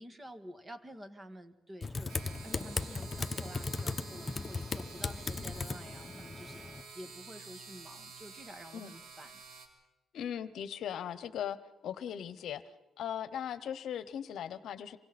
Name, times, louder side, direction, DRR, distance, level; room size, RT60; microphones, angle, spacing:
voice 1, 0.0-2.1 2.4-9.4, equal, 20° right, 9 dB, 1.9 m, -49 dB
Typing, 1.8-6.8, left 3 dB, 30° left, 1.1 m, -37 dB
sound 1, 2.1-9.7, right 4 dB, 70° right, 3.7 m, -50 dB
sound 2, 3.0-7.4, left 3 dB, 10° left, 2.6 m, -58 dB
voice 2, 10.1-11.6 11.8-12.6 13.0-15.0, left 9 dB, 70° left, 14 dB, 0.9 m, -38 dB
27.5 x 24.0 x 4.3 m, 1.1 s
cardioid pair, 90°, 0 cm